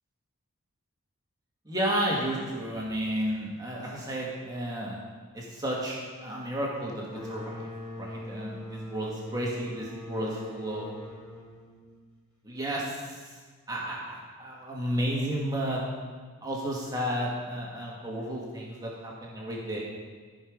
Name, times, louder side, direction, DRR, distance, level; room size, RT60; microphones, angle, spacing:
voice 1, 1.7-5.0 5.3-7.7 8.0-10.9 12.4-13.3 13.7-15.8 16.4-19.8, right 1 dB, 15° right, -4 dB, 2.0 m, -32 dB
sound 1, 7.1-12.5, left 1 dB, ahead, 3.6 m, -42 dB
14.0 x 5.5 x 5.3 m, 1.5 s
head